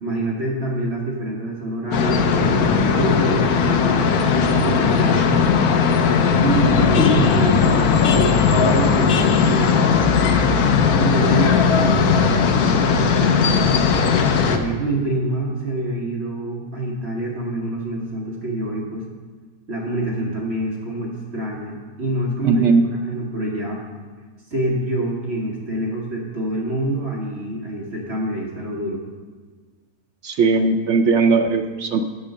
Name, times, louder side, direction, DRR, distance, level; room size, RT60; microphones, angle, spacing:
voice 1, 0.0-5.4 6.4-10.0 11.0-13.7 14.4-19.1 19.7-23.8 24.5-29.0, right 1 dB, 45° right, -2 dB, 1.5 m, -26 dB
sound 1, 1.9-14.6, left 5 dB, 80° left, 1.2 m, -17 dB
voice 2, 22.4-22.8 30.2-32.0, right 4 dB, 65° right, 5 dB, 0.8 m, -18 dB
8.2 x 7.5 x 6.4 m, 1.5 s
omnidirectional pair, 1.6 m